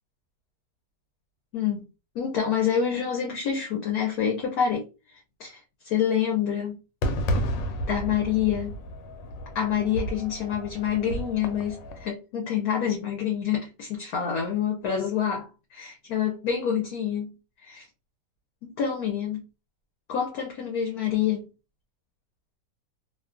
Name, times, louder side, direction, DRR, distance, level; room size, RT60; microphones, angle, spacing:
voice 1, 2.1-4.8 5.4-5.6 5.8-6.8 7.9-8.8 9.5-17.3 17.6-17.8 18.6-19.4 20.1-21.5, left 8 dB, 70° left, 1.0 m, -27 dB
Fireworks, 7.0-12.1, equal, 85° left, 1.2 m, -32 dB
2.8 x 2.3 x 2.4 m
omnidirectional pair, 1.9 m